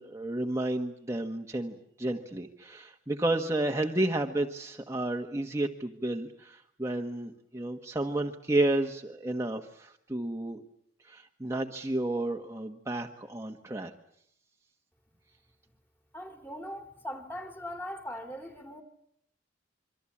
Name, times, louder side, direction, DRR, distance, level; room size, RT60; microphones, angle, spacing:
voice 1, 0.0-10.6 11.1-13.9, right 1 dB, 15° right, 1.6 m, -31 dB
voice 2, 16.1-18.8, equal, 10° left, 3.1 m, -40 dB
27.0 x 24.5 x 8.7 m
head